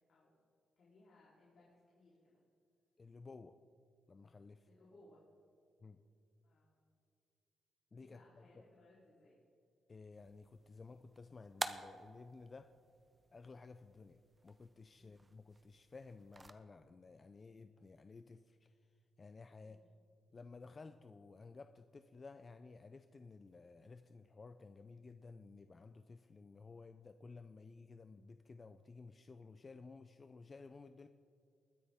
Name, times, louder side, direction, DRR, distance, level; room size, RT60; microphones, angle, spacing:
voice 1, 0.8-2.4 4.7-5.2 6.4-6.8 8.0-9.4 15.0-15.2 19.6-19.9, left 2 dB, 65° left, -8 dB, 3.5 m, -65 dB
voice 2, 3.0-3.5 4.1-4.7 5.8-6.0 7.9-8.6 9.9-12.7 13.3-18.8 19.2-19.8 20.3-31.1, left 4 dB, 35° left, 9 dB, 0.5 m, -55 dB
sound 1, 10.2-16.5, right 2 dB, 20° right, 0.7 m, -50 dB
21.5 x 9.7 x 3.6 m, 2.4 s
cardioid pair, 85°, 0 cm